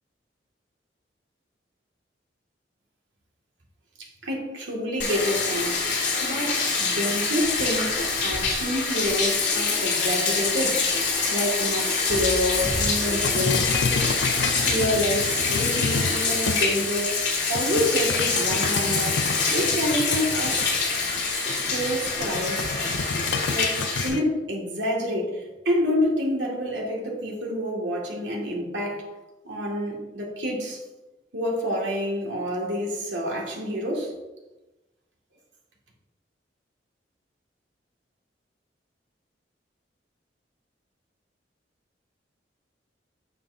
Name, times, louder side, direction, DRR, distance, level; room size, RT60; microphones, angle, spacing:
voice 1, 4.0-10.9 11.3-13.7 14.5-20.7 21.5-22.7 23.5-29.1 29.4-30.8 31.3-34.1, equal, 85° right, -2 dB, 2.1 m, -28 dB
Bathtub (filling or washing), 5.0-24.1, left 4 dB, 90° left, 2.3 m, -25 dB
sound 1, 13.2-16.9 17.6-24.2, left 5 dB, 70° left, 0.5 m, -30 dB
8.5 x 7.1 x 2.7 m, 1.1 s
head